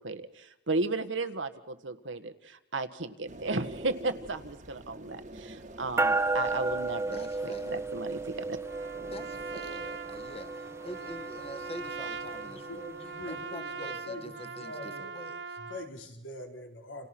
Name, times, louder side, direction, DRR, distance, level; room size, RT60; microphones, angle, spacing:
voice 1, 0.0-8.6, right 3 dB, 80° right, 9 dB, 1.6 m, -34 dB
sound 1, 3.3-11.0, right 1 dB, 40° right, 1.6 m, -48 dB
sound 2, 6.0-13.7, right 3 dB, 15° right, 1.1 m, -34 dB
voice 2, 7.1-7.8 9.1-12.9 13.2-15.6, left 1 dB, 30° left, 9 dB, 1.7 m, -45 dB
Trumpet, 8.7-15.9, right 5 dB, 65° right, 1.0 m, -41 dB
voice 3, 12.5-15.1 15.6-17.1, left 1 dB, 90° left, 2 dB, 4.7 m, -43 dB
29.5 x 28.5 x 6.1 m, 0.86 s
head